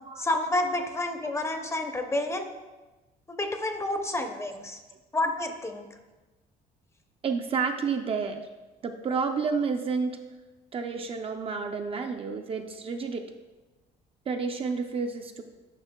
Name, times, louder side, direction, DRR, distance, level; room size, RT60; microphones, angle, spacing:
voice 1, 0.2-2.5 3.3-4.8 5.1-5.9, left 2 dB, 15° left, 5 dB, 0.6 m, -29 dB
voice 2, 7.2-8.5 8.8-10.2 10.7-13.3 14.3-15.4, right 5 dB, 35° right, 5 dB, 0.4 m, -30 dB
9.7 x 5.4 x 2.2 m, 1.2 s
cardioid pair, 110°, 17 cm